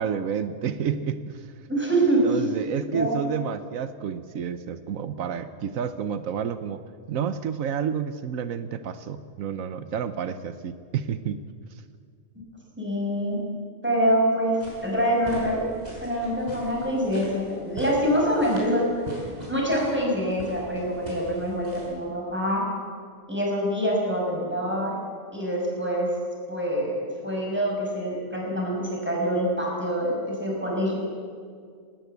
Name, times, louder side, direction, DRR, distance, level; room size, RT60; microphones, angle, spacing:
voice 1, 0.0-1.5 2.2-6.8 7.1-11.4, right 7 dB, 85° right, 11 dB, 1.2 m, -30 dB
voice 2, 1.7-2.4 2.9-3.2 12.8-13.4 13.8-14.6 14.8-15.6 16.0-18.9 19.5-22.6 23.3-25.0 25.3-26.1 26.5-31.0, equal, 10° right, -2 dB, 6.2 m, -25 dB
sound 1, 14.6-21.9, equal, 30° right, 6.5 m, -42 dB
19.5 x 18.5 x 8.1 m, 2.1 s
omnidirectional pair, 1.4 m